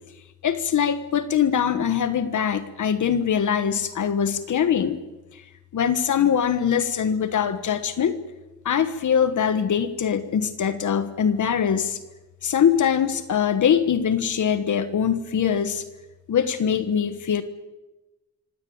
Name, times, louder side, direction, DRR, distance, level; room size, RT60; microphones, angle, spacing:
voice 1, 0.4-5.0 5.3-5.4 5.7-8.2 8.6-12.0 12.4-15.8 16.3-17.4, left 8 dB, 75° left, 12 dB, 1.4 m, -22 dB
25.5 x 17.0 x 8.8 m, 1.1 s
wide cardioid pair, 120°, 31 cm